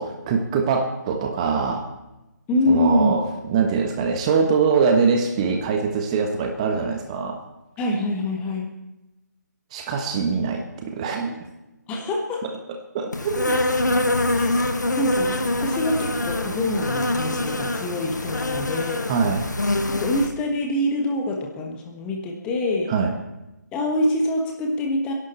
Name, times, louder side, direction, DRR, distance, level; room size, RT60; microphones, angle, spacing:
voice 1, 0.0-1.9 2.7-7.4 9.7-11.4 12.4-12.5 12.9-13.6 19.1-19.5 22.9-23.1, right 5 dB, 20° right, 4 dB, 1.3 m, -23 dB
voice 2, 2.5-3.2 7.8-8.7 11.9-12.4 14.3-14.6 15.0-19.1 19.9-22.9 23.7-25.1, left 1 dB, 10° left, 1 dB, 1.4 m, -25 dB
Insect, 13.1-20.3, left 2 dB, 75° left, 1.6 m, -24 dB
26.0 x 11.5 x 4.4 m, 0.98 s
figure-of-eight pair, 150°, 10 cm